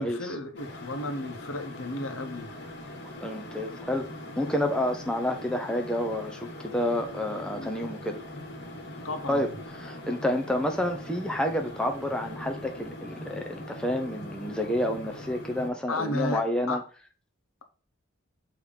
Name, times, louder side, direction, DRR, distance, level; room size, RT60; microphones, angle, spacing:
voice 1, 0.0-2.5 7.1-7.2 7.5-7.7 9.0-9.5 15.9-16.8, left 2 dB, 80° left, 1.2 m, -33 dB
sound 1, 0.6-15.7, left 1 dB, 50° left, 1.5 m, -41 dB
voice 2, 3.2-4.1 4.4-8.2 9.3-9.5 9.8-16.8, left 1 dB, 5° left, 0.7 m, -29 dB
7.0 x 3.2 x 5.2 m
head